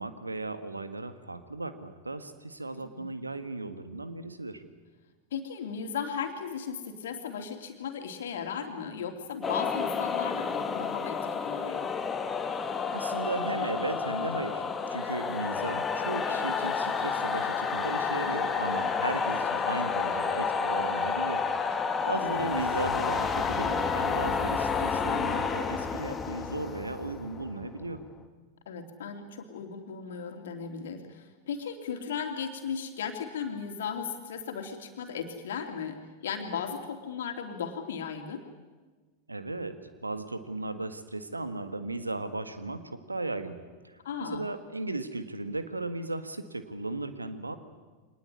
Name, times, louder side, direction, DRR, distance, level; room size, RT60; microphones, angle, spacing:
voice 1, 0.0-4.6 12.9-14.6 14.9-21.4 22.0-28.0 39.3-43.6 43.8-47.5, right 2 dB, 80° right, 10 dB, 1.7 m, -36 dB
voice 2, 2.7-3.1 5.3-11.9 18.2-18.4 22.1-22.5 28.7-38.4 44.0-44.4, left 7 dB, 60° left, 5 dB, 3.1 m, -36 dB
sound 1, 9.4-28.0, left 5 dB, 20° left, 1.8 m, -30 dB
24.0 x 20.0 x 9.7 m, 1.4 s
figure-of-eight pair, 90°, 0 cm